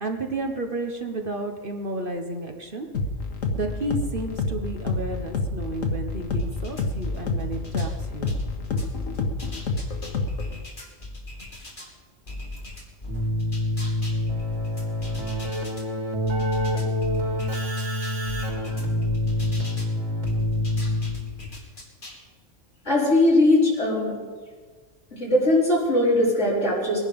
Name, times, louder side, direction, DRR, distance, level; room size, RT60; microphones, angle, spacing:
voice 1, 0.0-2.9 3.5-8.4, right 2 dB, 45° right, 4 dB, 1.2 m, -32 dB
sound 1, 2.9-10.6, left 3 dB, 85° left, 1.7 m, -29 dB
sound 2, 6.3-7.9 8.3-11.9 12.3-15.8 16.3-19.9 20.3-22.2, left 1 dB, 40° left, 2.9 m, -39 dB
Keyboard (musical), 13.1-21.4, left 1 dB, 80° right, 3.7 m, -26 dB
voice 2, 22.8-24.1 25.1-27.0, left 1 dB, 65° left, -6 dB, 5.4 m, -20 dB
21.5 x 11.0 x 5.3 m, 1.5 s
omnidirectional pair, 1.3 m